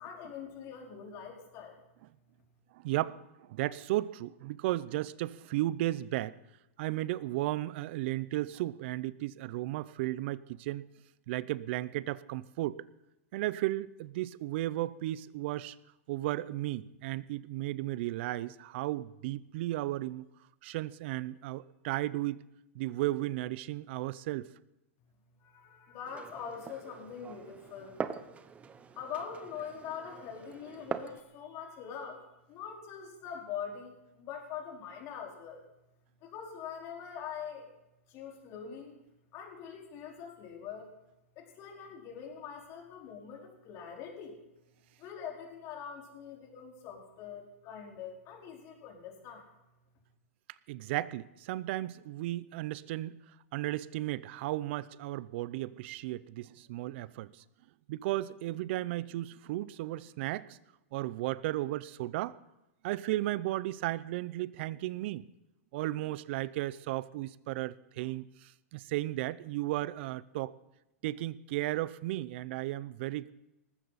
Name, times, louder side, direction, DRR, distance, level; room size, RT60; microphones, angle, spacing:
voice 1, 0.0-1.8 25.4-28.1 29.0-35.6 36.2-37.7 38.1-38.9 39.3-40.9 41.4-44.4 45.0-49.5, left 7 dB, 35° left, 0 dB, 4.5 m, -43 dB
voice 2, 2.7-6.4 6.8-10.8 11.3-12.8 13.3-15.8 16.1-20.3 20.6-22.4 22.7-24.5 50.7-53.2 53.5-57.4 57.9-60.6 60.9-62.4 62.8-65.3 65.7-70.5 71.0-73.3, right 16 dB, 50° right, 19 dB, 0.6 m, -34 dB
Glass, 26.1-31.2, right 6 dB, 15° right, 0.8 m, -43 dB
19.5 x 15.5 x 4.2 m, 0.91 s
hypercardioid pair, 135°, 8 cm